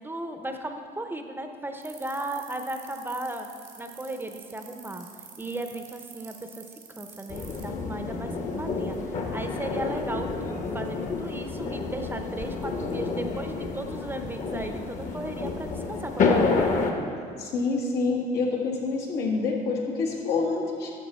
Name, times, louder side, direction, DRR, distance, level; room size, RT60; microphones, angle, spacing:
voice 1, 0.0-3.5 3.8-5.1 5.4-6.7 7.0-16.8, right 1 dB, 10° right, 5 dB, 0.6 m, -36 dB
sound 1, 1.8-7.6, right 9 dB, 85° right, 2.0 m, -46 dB
sound 2, 7.3-16.9, left 4 dB, 50° left, 1.1 m, -29 dB
voice 2, 17.4-20.9, left 3 dB, 85° left, -2 dB, 1.7 m, -27 dB
12.0 x 6.4 x 4.3 m, 2.2 s
cardioid pair, 110°, 17 cm